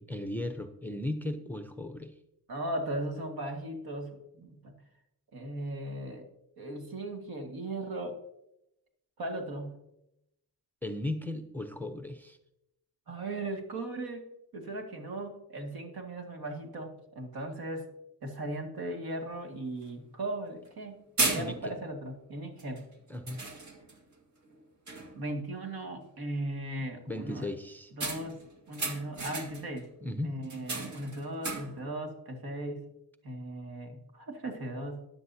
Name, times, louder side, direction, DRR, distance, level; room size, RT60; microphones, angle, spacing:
voice 1, 0.0-2.1 10.8-12.4 21.3-21.8 23.1-23.4 27.1-27.9 30.0-30.3, left 1 dB, 5° left, 7 dB, 0.7 m, -36 dB
voice 2, 2.5-4.7 5.3-6.2 6.6-8.2 9.2-9.9 13.1-17.9 18.2-22.8 25.1-27.5 27.9-29.9 30.2-32.9 33.2-35.1, right 1 dB, 65° right, 3 dB, 2.2 m, -38 dB
sound 1, 19.3-19.4 19.8-19.9 20.7-20.8 21.2-21.9 22.6-22.8 23.3-24.0 24.5-24.6 24.9-25.3 28.0-29.8 30.4-31.9, right 3 dB, 45° right, 2.1 m, -35 dB
14.0 x 10.5 x 2.8 m, 0.83 s
cardioid pair, 125°, 39 cm